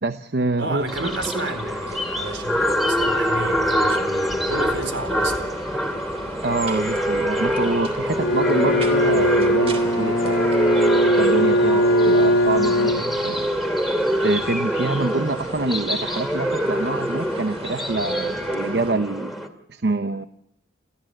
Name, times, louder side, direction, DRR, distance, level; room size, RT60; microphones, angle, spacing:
voice 1, 0.0-0.8 6.4-10.5 11.2-13.5 14.2-19.3 19.7-20.3, right 2 dB, 60° right, 0.9 m, -26 dB
voice 2, 0.6-5.5, right 2 dB, 80° right, 4.3 m, -31 dB
sound 1, 0.8-18.9, right 1 dB, 35° right, 3.1 m, -38 dB
sound 2, 0.9-19.5, equal, ahead, 2.4 m, -25 dB
Bowed string instrument, 8.1-13.6, equal, 90° left, 2.0 m, -20 dB
28.5 x 14.5 x 7.8 m
head